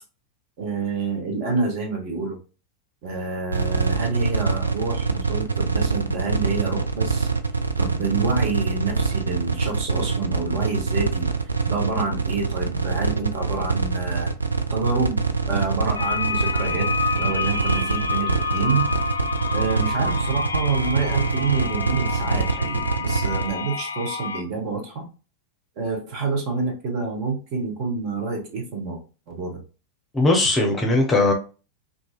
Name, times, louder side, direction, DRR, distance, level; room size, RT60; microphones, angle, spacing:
voice 1, 0.6-2.4 3.0-7.3 7.8-11.3 11.7-14.3 14.7-15.2 15.5-16.9 17.1-18.9 19.5-25.1 25.8-29.0 29.3-29.6, right 4 dB, 45° right, 1 dB, 1.0 m, -27 dB
sound 1, 3.5-23.5, right 4 dB, 80° right, 0.3 m, -24 dB
sound 2, 16.0-24.4, left 5 dB, 75° left, 0.3 m, -28 dB
voice 2, 30.1-31.3, left 2 dB, 15° left, 2 dB, 0.7 m, -19 dB
2.6 x 2.5 x 2.3 m, 0.34 s
figure-of-eight pair, 90°, 0 cm